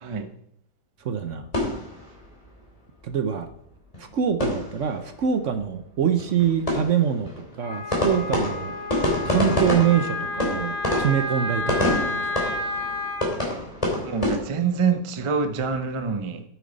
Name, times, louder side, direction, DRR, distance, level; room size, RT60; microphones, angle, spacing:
voice 1, 1.0-1.5 3.0-3.5 4.0-8.7 9.2-12.4, right 8 dB, 60° right, 9 dB, 0.9 m, -25 dB
sound 1, 1.3-2.7 3.0-3.1 3.4-3.5 3.8-5.2 5.5-5.6 5.9-14.4, left 1 dB, 20° left, 3.0 m, -28 dB
Wind instrument woodwind instrument, 7.6-13.3, left 2 dB, 15° right, 2.7 m, -31 dB
voice 2, 14.0-16.4, right 5 dB, 45° right, 7 dB, 0.4 m, -25 dB
9.3 x 8.6 x 4.0 m, 0.71 s
omnidirectional pair, 1.9 m